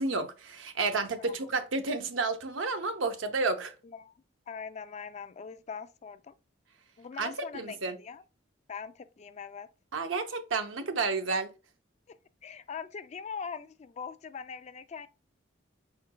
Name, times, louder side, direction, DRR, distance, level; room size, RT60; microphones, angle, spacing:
voice 1, 0.0-3.7 7.2-8.0 9.9-11.5, right 3 dB, 85° right, 0.7 m, -31 dB
voice 2, 4.5-6.3 7.0-8.2 8.7-9.7 12.1-12.2 12.4-15.1, left 6 dB, 35° left, 0.3 m, -42 dB
4.8 x 4.4 x 2.2 m
head